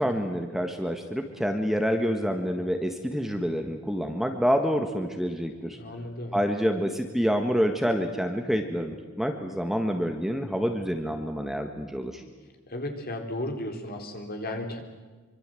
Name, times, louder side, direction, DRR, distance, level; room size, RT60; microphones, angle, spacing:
voice 1, 0.0-5.8 6.3-12.2, equal, ahead, 4 dB, 1.6 m, -27 dB
voice 2, 5.8-6.4 12.7-14.8, left 1 dB, 45° left, 4 dB, 3.9 m, -34 dB
25.5 x 25.0 x 7.8 m, 1.3 s
head